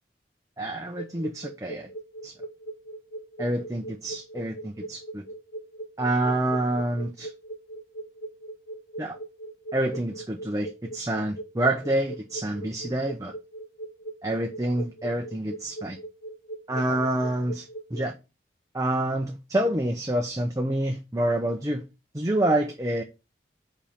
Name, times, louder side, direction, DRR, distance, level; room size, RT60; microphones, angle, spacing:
voice 1, 0.6-1.9 2.2-2.3 3.4-5.2 6.0-7.3 9.0-9.2 9.7-13.3 14.2-16.0 16.7-18.1 18.7-21.8 22.1-23.0, right 1 dB, 20° right, 0.7 m, -27 dB
sound 1, 0.8-18.1, right 2 dB, 75° left, 0.9 m, -39 dB
5.4 x 4.2 x 5.3 m
head